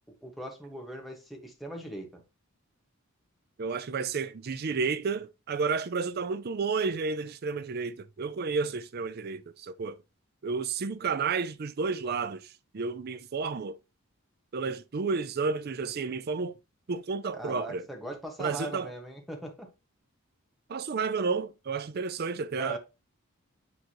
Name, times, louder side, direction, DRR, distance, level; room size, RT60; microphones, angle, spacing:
voice 1, 0.2-2.2 17.4-19.7 22.5-22.8, right 1 dB, ahead, 1.4 m, -40 dB
voice 2, 3.6-10.0 10.4-13.8 14.5-16.5 16.9-17.9 18.4-18.9 20.7-22.8, right 5 dB, 45° right, 0.5 m, -31 dB
8.7 x 3.8 x 3.0 m
head